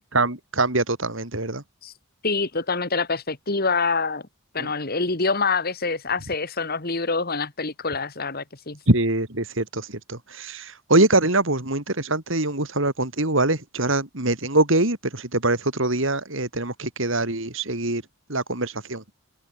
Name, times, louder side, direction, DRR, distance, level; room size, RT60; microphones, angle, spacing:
voice 1, 0.1-1.6 4.6-4.7 8.9-18.0 18.3-19.0, right 2 dB, 60° right, 3.8 m, -23 dB
voice 2, 2.2-4.2 4.5-8.8, left 4 dB, 45° left, 2.2 m, -26 dB
head